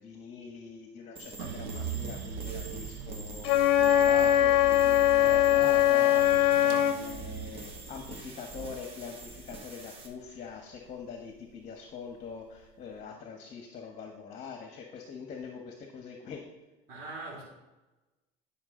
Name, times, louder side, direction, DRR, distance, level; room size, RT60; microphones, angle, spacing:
voice 1, 0.0-6.2 6.6-16.4, left 6 dB, 45° left, 1.3 m, -43 dB
sound 1, 1.2-10.1, right 2 dB, 35° right, 1.6 m, -46 dB
sound 2, 1.4-11.6 12.0-12.8, right 7 dB, 80° right, 1.1 m, -42 dB
Wind instrument woodwind instrument, 3.4-7.0, left 11 dB, 75° left, 0.7 m, -22 dB
voice 2, 5.1-6.2 16.9-17.4, right 3 dB, 60° right, 3.2 m, -42 dB
10.5 x 5.8 x 3.8 m
supercardioid pair, 105°, 17 cm